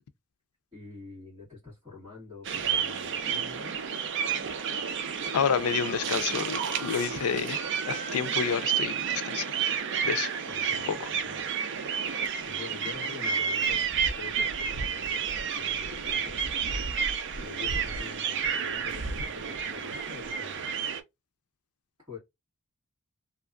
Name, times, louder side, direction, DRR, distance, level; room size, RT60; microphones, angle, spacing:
voice 1, 0.7-3.8 10.4-11.5 12.0-13.9 14.1-15.3 15.5-16.4 17.4-20.7 22.1-22.2, left 5 dB, 20° right, 1.5 m, -46 dB
sound 1, 2.4-21.0, right 7 dB, 55° right, 0.5 m, -31 dB
voice 2, 5.3-9.5 10.0-10.3 10.8-11.0, left 7 dB, 85° left, 0.4 m, -29 dB
2.7 x 2.4 x 2.3 m
head